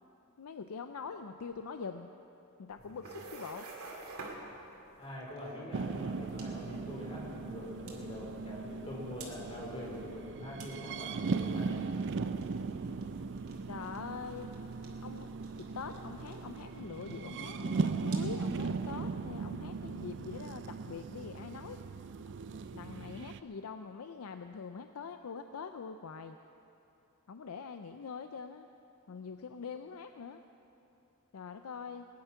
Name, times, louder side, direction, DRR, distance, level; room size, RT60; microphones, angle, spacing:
voice 1, 0.4-2.1 2.6-3.7 13.7-14.5 15.0-21.8 22.7-26.4 27.3-28.7 29.1-30.4 31.3-32.1, left 5 dB, 80° left, 8 dB, 0.5 m, -44 dB
sound 1, 2.7-18.9, right 3 dB, 80° right, 2.4 m, -53 dB
voice 2, 5.0-11.8, left 1 dB, 25° left, -3 dB, 3.6 m, -44 dB
sound 2, 5.7-23.4, right 4 dB, 55° right, 0.4 m, -38 dB
20.5 x 10.5 x 5.8 m, 2.9 s
head